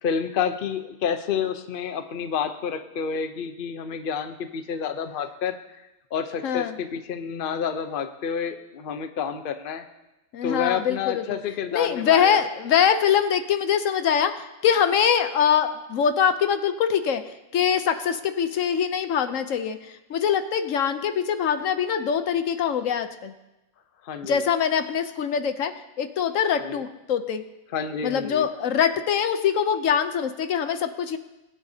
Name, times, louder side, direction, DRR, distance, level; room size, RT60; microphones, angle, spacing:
voice 1, 0.0-9.8 10.4-12.4 24.0-24.4 26.6-26.8 27.7-28.5, left 7 dB, 45° left, 8 dB, 0.8 m, -29 dB
voice 2, 6.4-6.8 10.3-11.4 11.7-23.3 24.2-27.4 28.0-31.2, left 8 dB, 75° left, 9 dB, 1.0 m, -23 dB
20.5 x 9.6 x 2.8 m, 0.99 s
omnidirectional pair, 1.4 m